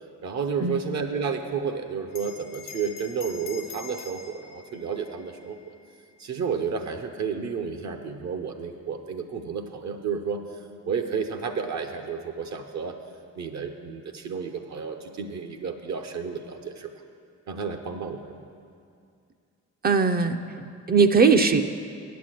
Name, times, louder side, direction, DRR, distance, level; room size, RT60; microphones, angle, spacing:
voice 1, 0.2-5.7 6.2-10.4 10.8-13.0 13.4-16.9 17.5-18.2, right 6 dB, 60° right, 6 dB, 0.7 m, -31 dB
Bell, 2.1-7.0, left 6 dB, 85° left, 0.9 m, -45 dB
voice 2, 19.8-21.6, right 5 dB, 30° right, 8 dB, 0.4 m, -20 dB
8.3 x 8.2 x 7.6 m, 2.3 s
cardioid pair, 125°, 32 cm